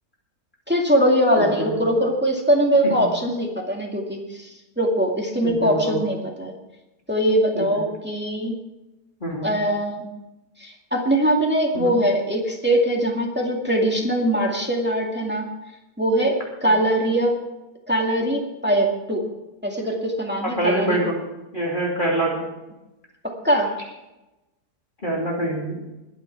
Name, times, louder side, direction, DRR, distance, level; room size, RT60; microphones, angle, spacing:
voice 1, 0.7-4.5 4.8-6.5 7.1-8.6 9.4-10.0 10.6-15.5 16.0-16.4 16.6-17.3 17.9-19.2 19.6-21.0 23.4-23.7, right 1 dB, 5° right, 0 dB, 2.2 m, -21 dB
voice 2, 1.4-1.8 2.8-2.9 5.4-6.0 7.5-7.7 9.2-9.5 11.7-11.9 16.6-16.8 20.4-21.1 21.5-22.4 25.0-25.8, right 1 dB, 30° left, -3 dB, 3.0 m, -25 dB
21.5 x 8.2 x 4.7 m, 0.99 s
omnidirectional pair, 1.7 m